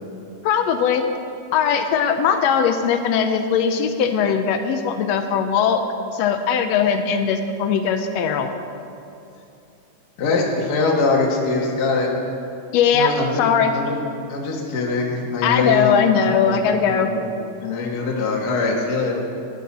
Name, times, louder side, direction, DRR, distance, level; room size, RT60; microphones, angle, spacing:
voice 1, 0.4-1.0 1.5-5.8 6.1-8.5 12.7-13.7 15.4-17.1, left 7 dB, 80° left, 7 dB, 1.6 m, -19 dB
voice 2, 10.2-12.1 12.9-13.4 13.7-14.0 14.3-15.9 16.4-17.2 17.6-19.1, left 3 dB, 45° left, -1 dB, 1.3 m, -23 dB
13.0 x 10.0 x 4.2 m, 2.7 s
omnidirectional pair, 3.4 m